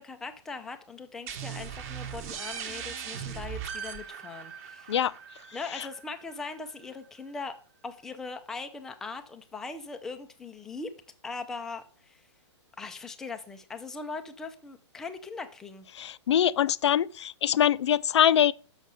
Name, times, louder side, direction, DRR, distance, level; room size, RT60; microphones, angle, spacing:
voice 1, 0.0-4.9 5.5-7.6 7.8-10.9 11.2-12.2 12.8-15.9, left 4 dB, 5° left, 0.3 m, -40 dB
sound 1, 1.3-6.7, right 8 dB, 30° right, 1.0 m, -39 dB
voice 2, 15.9-18.5, left 10 dB, 65° left, 0.4 m, -23 dB
6.4 x 6.2 x 6.7 m
hypercardioid pair, 165°, 15 cm